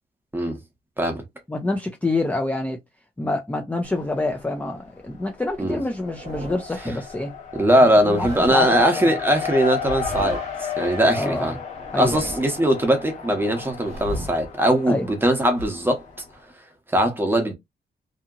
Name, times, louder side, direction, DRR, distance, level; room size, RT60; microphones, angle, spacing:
voice 1, 1.5-2.8 3.2-7.3 8.1-9.1 11.2-11.6 11.9-12.2 14.9-15.0, left 2 dB, 10° left, 0.4 m, -26 dB
Race car auto racing, 3.8-4.6 4.9-16.3, left 7 dB, 40° left, 1.1 m, -34 dB
sound 1, 6.0-6.8 7.9-8.9 9.8-10.7 11.7-12.6 13.6-14.5 15.5-15.6, right 1 dB, 40° right, 0.9 m, -35 dB
voice 2, 7.5-11.6 11.9-16.0 16.9-17.5, right 1 dB, 10° right, 0.8 m, -20 dB
2.7 x 2.7 x 2.4 m
wide cardioid pair, 170°, 18 cm